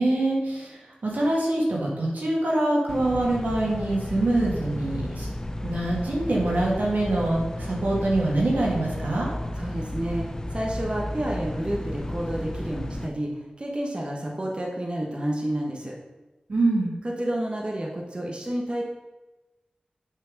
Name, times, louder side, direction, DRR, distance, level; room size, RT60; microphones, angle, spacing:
voice 1, 0.0-5.3 5.6-9.3 16.5-16.9, right 2 dB, 85° right, -3 dB, 2.0 m, -24 dB
sound 1, 2.9-13.1, left 1 dB, 20° left, 0.4 m, -33 dB
voice 2, 9.6-15.9 17.2-18.8, right 1 dB, 35° right, -1 dB, 1.1 m, -30 dB
7.0 x 4.5 x 5.2 m, 1.1 s
wide cardioid pair, 55°, 3 cm